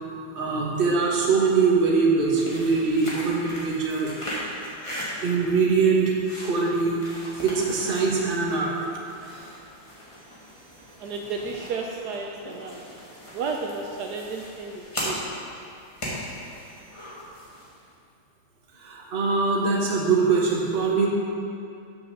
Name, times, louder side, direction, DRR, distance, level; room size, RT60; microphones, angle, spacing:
voice 1, 0.4-4.1 5.2-6.1 6.4-7.0 7.4-8.7 18.8-21.1, right 4 dB, 40° right, -2 dB, 0.9 m, -22 dB
sound 1, 2.2-17.8, equal, 15° left, 1.3 m, -38 dB
voice 2, 11.0-12.8 13.3-15.3, right 4 dB, 90° right, 1 dB, 0.8 m, -32 dB
6.3 x 5.9 x 6.6 m, 2.5 s
omnidirectional pair, 2.4 m